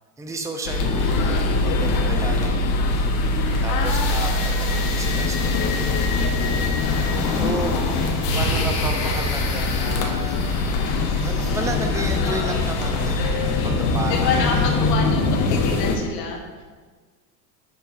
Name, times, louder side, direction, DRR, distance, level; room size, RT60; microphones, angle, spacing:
voice 1, 0.2-6.8 7.1-7.8 8.3-10.5 11.2-15.2, right 2 dB, 5° right, 4 dB, 0.6 m, -33 dB
sound 1, 0.6-16.0, left 2 dB, 65° left, 1.3 m, -23 dB
sound 2, 0.8-15.8, left 9 dB, 40° left, 0.5 m, -29 dB
voice 2, 3.7-4.5 14.1-16.6, left 5 dB, 80° left, 2 dB, 1.5 m, -28 dB
sound 3, 7.0-15.6, right 4 dB, 65° right, 1.2 m, -35 dB
8.0 x 3.3 x 5.9 m, 1.5 s
supercardioid pair, 105°, 48 cm